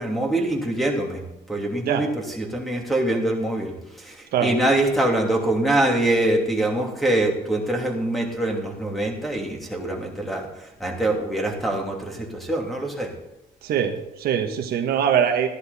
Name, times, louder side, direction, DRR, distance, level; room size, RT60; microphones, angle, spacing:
voice 1, 0.0-3.7 4.0-13.1, right 1 dB, ahead, 0 dB, 2.9 m, -24 dB
voice 2, 13.6-15.5, right 8 dB, 65° right, 5 dB, 1.3 m, -22 dB
14.0 x 11.0 x 4.1 m, 0.93 s
cardioid pair, 110°, 17 cm